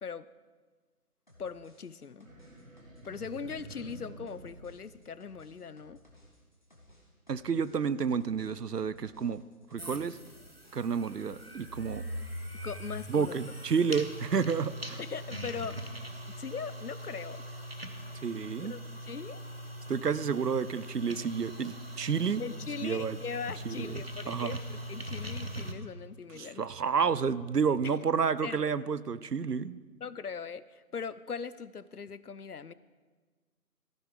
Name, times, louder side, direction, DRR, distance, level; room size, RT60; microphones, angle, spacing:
sound 1, 1.3-12.1 12.3-13.3, left 1 dB, 30° left, 1.2 m, -60 dB
voice 1, 1.4-2.3 3.0-6.0 12.6-13.4 15.0-15.9 16.3-17.4 18.6-19.4 22.4-26.6 27.8-28.0 28.4-28.7 30.0-32.7, left 6 dB, 75° left, 17 dB, 0.6 m, -40 dB
Monster Growl, 2.2-5.7, right 1 dB, 55° right, 1.9 m, -49 dB
voice 2, 7.3-9.4 9.7-10.2 10.7-12.0 13.1-15.0 18.2-18.7 19.9-22.4 22.8-23.2 23.7-23.9 24.3-24.6 26.3-29.8, right 6 dB, 90° right, 17 dB, 0.7 m, -30 dB
sound 2, 9.8-25.7, equal, 40° right, 0.8 m, -41 dB
14.5 x 9.3 x 4.9 m, 1.4 s
figure-of-eight pair, 165°, 46 cm